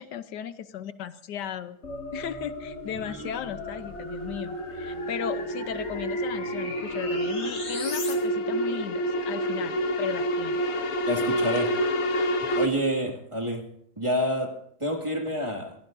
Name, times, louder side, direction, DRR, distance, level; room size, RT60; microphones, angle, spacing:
voice 1, 0.0-1.8 2.1-10.6, left 9 dB, 80° left, 12 dB, 1.4 m, -36 dB
sound 1, 1.8-8.1, left 2 dB, 40° left, 2.4 m, -39 dB
sound 2, 2.1-12.7, equal, 60° left, 1.6 m, -29 dB
voice 2, 11.0-11.7 12.5-13.6 14.0-14.5 14.8-15.8, equal, 15° right, 1 dB, 2.2 m, -28 dB
25.5 x 17.0 x 2.6 m, 0.69 s
omnidirectional pair, 1.8 m